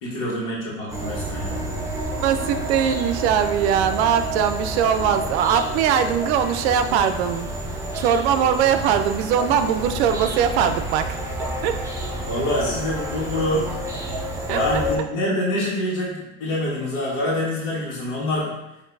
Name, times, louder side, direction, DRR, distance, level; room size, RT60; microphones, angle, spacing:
voice 1, 0.0-1.8 12.3-13.7 14.5-18.6, left 1 dB, 70° left, -5 dB, 1.4 m, -26 dB
sound 1, 0.9-15.0, right 1 dB, 10° right, 0.5 m, -29 dB
voice 2, 1.7-7.5 7.9-11.8 14.5-14.8, right 8 dB, 70° right, 9 dB, 0.5 m, -21 dB
4.4 x 2.7 x 2.6 m, 0.92 s
supercardioid pair, 115°, 35 cm